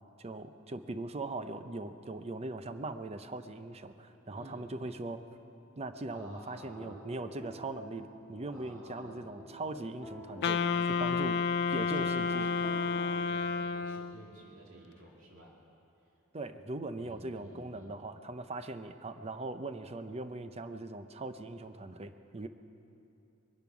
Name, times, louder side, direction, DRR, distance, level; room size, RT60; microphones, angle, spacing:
voice 1, 0.2-5.2 5.8-10.6 10.9-11.4 11.7-12.5 16.3-22.5, right 2 dB, 30° right, 10 dB, 0.6 m, -40 dB
voice 2, 4.4-4.7 6.1-7.1 8.5-9.3 10.6-11.3 11.9-15.6 16.0-16.1 17.0-18.0, right 1 dB, 80° right, -3 dB, 2.2 m, -53 dB
sound 1, 6.5-13.2, equal, 10° right, 2.2 m, -49 dB
Wind instrument woodwind instrument, 10.4-14.3, left 5 dB, 55° left, 0.4 m, -31 dB
22.0 x 10.5 x 6.0 m, 2.8 s
head